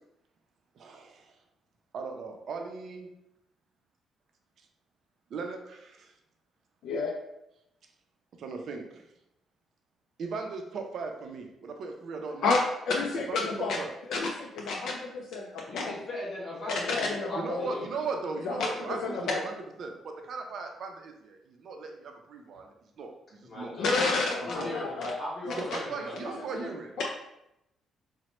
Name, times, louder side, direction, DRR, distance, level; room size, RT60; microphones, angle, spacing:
voice 1, 0.8-1.3 1.9-3.1 5.3-6.1 8.4-9.0 10.2-12.5 13.3-13.9 17.4-23.8 24.6-24.7 25.4-27.1, right 4 dB, 65° right, 3 dB, 0.4 m, -38 dB
voice 2, 6.8-7.2 12.4-13.8 14.1-15.9 16.7-17.7 18.5-19.4 23.8-25.1 25.5-25.8 27.0-27.1, left 3 dB, 75° left, 0 dB, 0.3 m, -30 dB
voice 3, 15.6-18.1 23.4-23.9 24.3-26.4, left 1 dB, 55° left, -7 dB, 0.9 m, -38 dB
3.0 x 2.1 x 3.0 m, 0.83 s
cardioid pair, 90°, 0 cm